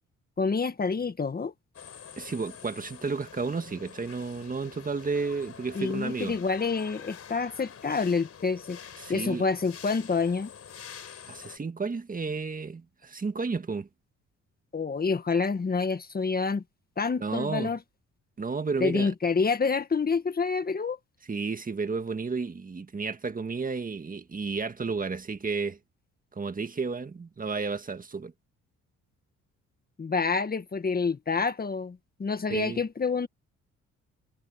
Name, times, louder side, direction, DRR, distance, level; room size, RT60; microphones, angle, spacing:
voice 1, 0.4-1.5 5.7-8.8 9.1-10.5 14.7-16.6 17.0-17.8 18.8-21.0 30.0-33.3, left 4 dB, 30° left, 1.7 m, -28 dB
sound 1, 1.7-11.6, left 7 dB, 50° left, 5.0 m, -47 dB
voice 2, 2.2-6.4 9.0-9.5 11.3-13.9 17.2-17.7 18.4-19.1 21.3-25.8 26.3-28.3 32.5-32.8, right 4 dB, 30° right, 1.7 m, -32 dB
cardioid pair, 90°, 30 cm